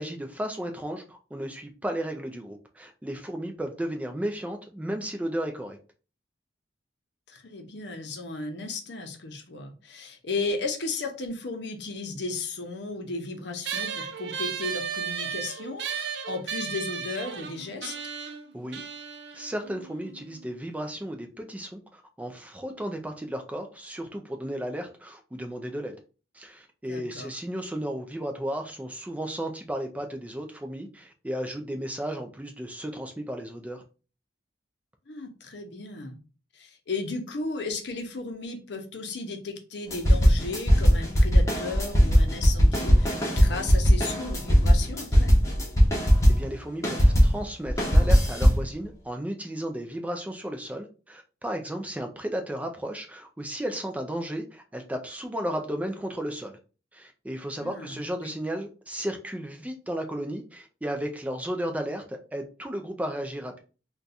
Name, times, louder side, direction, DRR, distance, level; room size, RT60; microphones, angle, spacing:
voice 1, 0.0-5.8 18.5-18.8 19.3-26.0 26.3-33.8 46.3-56.6 56.9-63.6, right 1 dB, 10° right, 0.3 m, -34 dB
voice 2, 7.3-18.0 26.9-27.3 35.1-36.2 36.5-45.4 57.6-58.3, left 3 dB, 65° left, 0.6 m, -35 dB
sound 1, 13.6-20.4, right 7 dB, 65° right, 0.5 m, -35 dB
sound 2, 39.9-46.5 46.8-48.7, equal, 15° left, 0.7 m, -19 dB
2.5 x 2.3 x 4.0 m
head